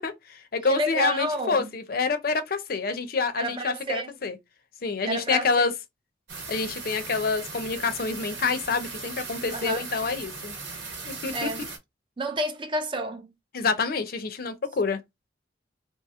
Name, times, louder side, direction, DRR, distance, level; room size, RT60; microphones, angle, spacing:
voice 1, 0.0-4.4 4.8-5.7 6.5-10.5 11.0-11.5 13.5-15.0, left 4 dB, 55° left, 0.5 m, -27 dB
voice 2, 0.7-1.7 3.4-4.1 5.1-5.7 9.5-9.9 11.3-11.7 12.2-13.3, right 1 dB, 25° right, 0.5 m, -30 dB
sound 1, 6.3-11.8, right 4 dB, 80° right, 1.2 m, -38 dB
2.8 x 2.6 x 3.5 m
head